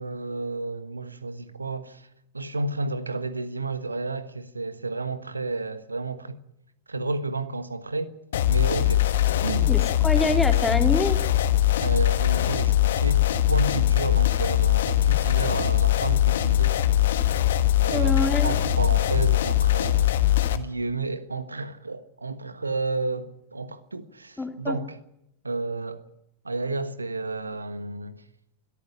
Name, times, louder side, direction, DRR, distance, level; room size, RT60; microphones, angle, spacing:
voice 1, 0.0-2.1 2.3-6.4 6.9-8.1 8.5-9.7 11.8-16.8 17.8-25.0 25.4-26.0 26.4-28.2, right 3 dB, 80° right, 1.4 m, -31 dB
sound 1, 8.3-20.6, left 13 dB, 60° left, 1.4 m, -21 dB
voice 2, 9.7-11.2 17.9-18.5 24.4-24.8, left 2 dB, 10° left, 2.7 m, -26 dB
22.0 x 13.5 x 9.9 m
figure-of-eight pair, 90°, 0 cm